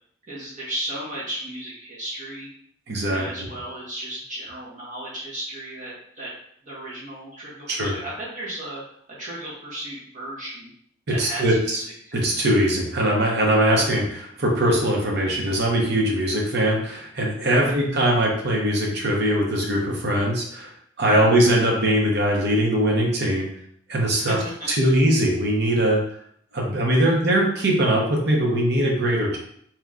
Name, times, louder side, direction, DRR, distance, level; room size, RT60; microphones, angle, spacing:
voice 1, 0.3-2.5 3.0-6.3 6.6-8.8 9.2-10.7 11.1-12.1 17.5-17.8 21.1-21.3 24.1-25.0, right 1 dB, 40° right, -7 dB, 1.6 m, -35 dB
voice 2, 2.9-3.5 7.7-8.0 11.1-11.8 12.1-20.7 21.0-23.5 23.9-24.4 24.7-26.0 26.5-29.4, right 1 dB, 60° right, -1 dB, 1.0 m, -21 dB
3.6 x 3.0 x 3.7 m, 0.67 s
head